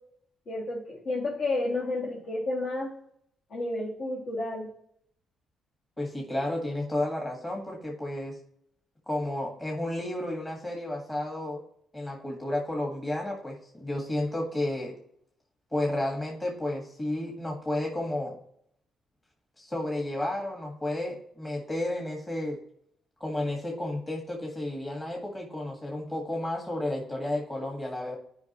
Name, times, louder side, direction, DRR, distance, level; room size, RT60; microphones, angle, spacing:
voice 1, 0.5-2.9 3.5-4.7, left 2 dB, 60° left, -6 dB, 2.1 m, -31 dB
voice 2, 6.0-8.4 9.1-11.6 11.9-15.0 15.7-18.4 19.6-22.6 23.2-28.2, left 1 dB, 20° left, -1 dB, 1.7 m, -32 dB
10.5 x 5.2 x 3.0 m, 0.69 s
cardioid pair, 90°, 0 cm